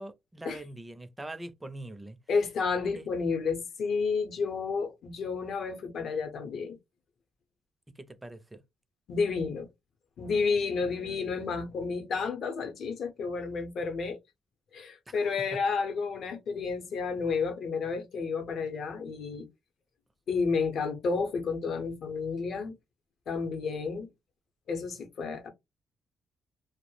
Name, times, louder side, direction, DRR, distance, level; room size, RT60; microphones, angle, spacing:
voice 1, 0.0-2.2 2.9-3.1 7.9-8.6 15.1-15.6, right 1 dB, 15° right, 0.4 m, -43 dB
voice 2, 2.3-6.8 9.1-9.7 10.2-14.2 14.7-19.5 20.3-22.7 23.3-24.1 24.7-25.5, left 5 dB, 65° left, 0.7 m, -31 dB
2.2 x 2.0 x 3.0 m
cardioid pair, 90°, 0 cm